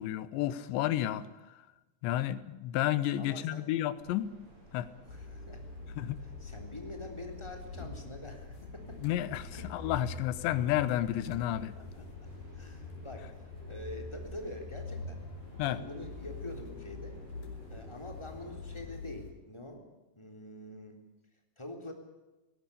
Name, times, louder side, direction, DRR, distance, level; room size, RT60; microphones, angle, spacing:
voice 1, 0.0-1.6 2.0-4.3 4.7-4.9 6.0-6.2 9.0-11.7 15.6-15.8, left 13 dB, 85° left, 15 dB, 3.3 m, -31 dB
voice 2, 3.2-3.7 5.1-5.6 6.0-9.0 9.5-9.7 11.8-12.3 12.6-15.2 15.6-17.2 17.7-19.8 20.1-21.0 21.6-21.9, left 1 dB, 5° left, 3 dB, 2.9 m, -45 dB
sound 1, 4.0-19.0, right 1 dB, 30° right, 8.2 m, -56 dB
sound 2, 5.1-19.3, left 3 dB, 55° left, 4.7 m, -44 dB
19.5 x 17.0 x 9.9 m, 1.1 s
omnidirectional pair, 5.0 m